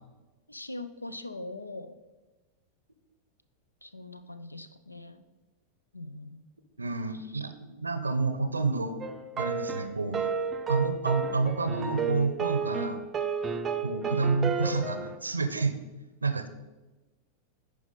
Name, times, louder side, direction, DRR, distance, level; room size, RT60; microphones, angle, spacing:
voice 1, 0.5-1.9 3.8-5.2 5.9-6.4 7.1-7.3 14.1-14.6, left 2 dB, 85° left, 12 dB, 0.5 m, -42 dB
voice 2, 6.8-9.0 9.4-10.3 10.7-13.0 13.6-15.8 16.2-16.5, right 4 dB, 80° right, 10 dB, 0.6 m, -29 dB
sound 1, 9.0-15.2, right 5 dB, 25° right, 0.5 m, -32 dB
10.5 x 4.8 x 4.1 m, 1.2 s
figure-of-eight pair, 90°, 0 cm